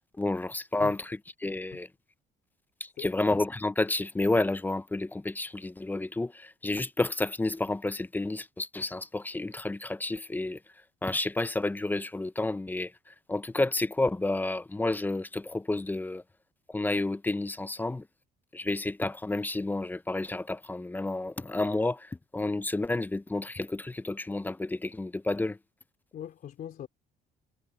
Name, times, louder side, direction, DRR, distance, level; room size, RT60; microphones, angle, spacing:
voice 1, 0.2-1.9 2.8-10.6 11.0-16.2 16.7-18.0 18.5-25.6, left 2 dB, 10° left, 0.6 m, -30 dB
voice 2, 26.1-26.9, left 10 dB, 55° left, 3.4 m, -41 dB
cardioid pair, 110°, 17 cm